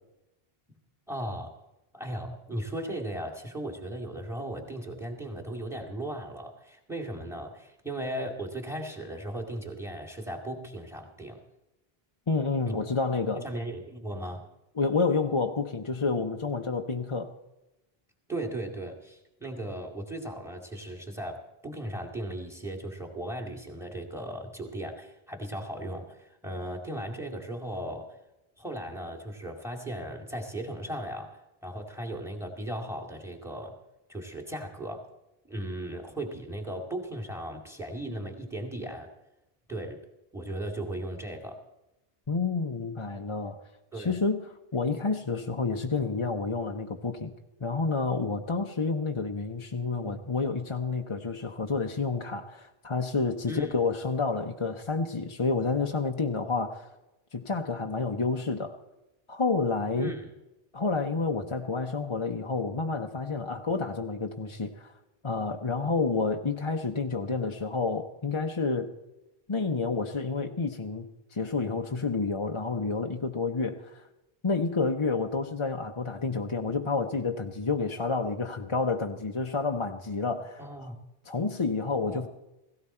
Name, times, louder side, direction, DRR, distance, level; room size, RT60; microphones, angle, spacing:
voice 1, 1.1-1.5 1.9-11.4 12.7-12.8 13.4-14.5 18.3-28.1 28.6-33.8 34.1-35.0 35.5-39.1 39.7-40.0 40.3-41.6 43.9-44.2 53.5-53.7 60.0-60.2 80.6-81.0 82.1-82.3, right 1 dB, 5° right, 2 dB, 2.1 m, -37 dB
voice 2, 12.3-13.4 14.8-17.3 42.3-43.6 43.9-47.3 47.6-56.9 57.3-58.8 59.3-60.1 60.7-64.9 65.2-68.9 69.5-74.0 74.4-80.9 81.2-82.3, left 4 dB, 35° left, 2 dB, 0.7 m, -29 dB
16.5 x 16.5 x 4.4 m, 0.95 s
omnidirectional pair, 1.0 m